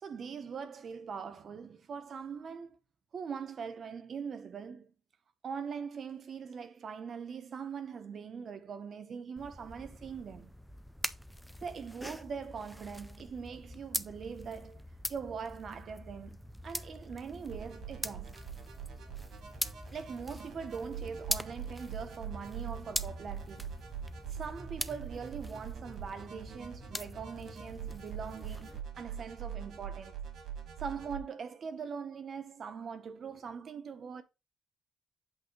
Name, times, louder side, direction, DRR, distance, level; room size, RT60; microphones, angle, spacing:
voice 1, 0.0-2.8 3.1-4.9 5.4-10.5 11.6-14.8 15.1-18.4 19.9-23.8 24.3-30.2 30.8-34.2, right 6 dB, 40° right, 0.8 m, -42 dB
sound 1, 9.4-28.8, equal, ahead, 0.3 m, -43 dB
sound 2, 17.5-31.2, right 8 dB, 65° right, 1.9 m, -44 dB
8.1 x 2.7 x 5.2 m
cardioid pair, 165°, 0 cm